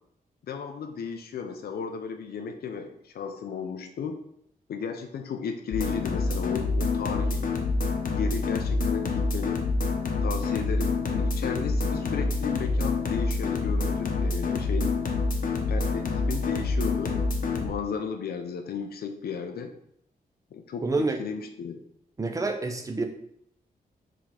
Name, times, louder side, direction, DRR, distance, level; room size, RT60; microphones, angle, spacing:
voice 1, 0.5-4.2 4.7-7.5 8.1-9.6 10.2-14.9 15.7-17.2 17.4-19.7 20.5-21.8, left 6 dB, 80° left, 6 dB, 0.7 m, -34 dB
sound 1, 5.7-17.7, left 3 dB, 60° left, 1.0 m, -27 dB
voice 2, 20.8-21.2 22.2-23.0, right 3 dB, 20° right, 5 dB, 0.7 m, -27 dB
5.0 x 3.7 x 5.7 m, 0.70 s
wide cardioid pair, 165°, 16 cm